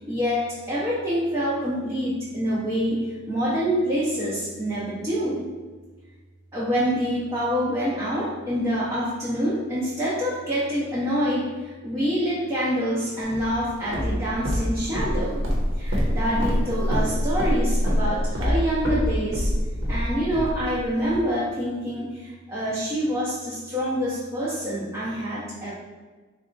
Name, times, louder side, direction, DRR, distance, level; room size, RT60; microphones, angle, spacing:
voice 1, 0.0-5.4 6.5-15.4 15.7-19.5 19.9-25.7, equal, 15° right, -8 dB, 0.6 m, -26 dB
Walk footsteps, 13.3-21.2, equal, 80° right, 0.9 m, -25 dB
4.0 x 2.3 x 3.8 m, 1.3 s
head